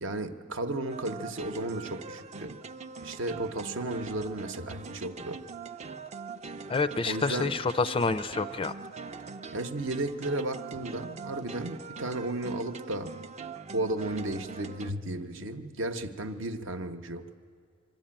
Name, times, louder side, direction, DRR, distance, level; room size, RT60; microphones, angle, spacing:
voice 1, 0.0-2.6 3.0-5.4 7.0-7.5 9.5-13.1 13.7-17.3, right 2 dB, 65° right, 8 dB, 0.9 m, -34 dB
sound 1, 0.9-14.9, right 4 dB, 35° right, 0.5 m, -42 dB
voice 2, 6.7-8.7, left 4 dB, 25° left, 11 dB, 0.4 m, -28 dB
23.0 x 13.5 x 8.8 m, 2.2 s
head